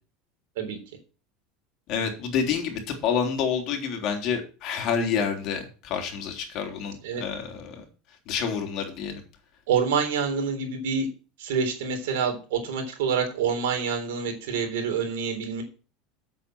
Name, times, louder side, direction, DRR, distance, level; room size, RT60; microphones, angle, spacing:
voice 1, 1.9-7.8 8.3-9.2, left 7 dB, 55° left, 3 dB, 3.5 m, -28 dB
voice 2, 9.7-11.1 11.4-15.6, right 6 dB, 75° right, 5 dB, 3.7 m, -27 dB
8.8 x 7.9 x 6.2 m, 0.35 s
hypercardioid pair, 95°, 0 cm